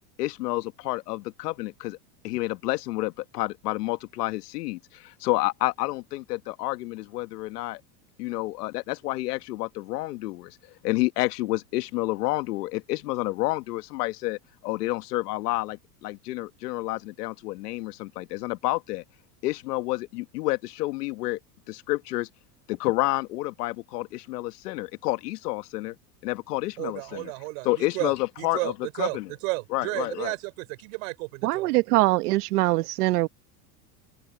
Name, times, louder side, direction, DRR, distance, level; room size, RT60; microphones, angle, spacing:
voice 1, 0.2-2.0 2.2-7.8 8.2-10.6 10.8-19.0 19.4-21.4 21.7-22.3 22.7-26.0 26.2-27.3 27.6-29.3 29.7-30.3, left 19 dB, 85° left, 1.5 m, -29 dB
voice 2, 26.8-31.7, right 27 dB, 55° right, 5.3 m, -33 dB
voice 3, 31.4-33.3, right 19 dB, 75° right, 1.3 m, -22 dB
open air
supercardioid pair, 175°, 46 cm